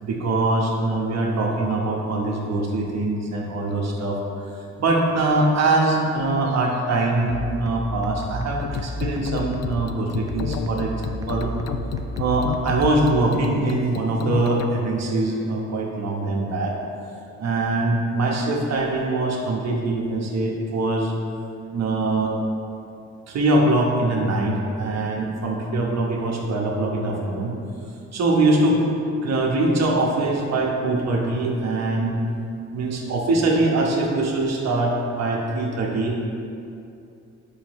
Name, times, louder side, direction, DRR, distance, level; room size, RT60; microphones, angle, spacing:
voice 1, 0.0-4.2 4.8-11.0 11.3-11.5 12.2-16.8 17.4-21.1 21.7-22.3 23.3-27.5 28.1-28.8 29.2-32.2 32.7-36.2, right 2 dB, 60° right, -1 dB, 1.2 m, -23 dB
sound 1, 7.3-13.3, right 1 dB, 10° right, 0.5 m, -33 dB
sound 2, 8.6-14.7, left 9 dB, 60° left, 0.4 m, -31 dB
8.3 x 5.7 x 3.1 m, 2.6 s
cardioid pair, 90°, 30 cm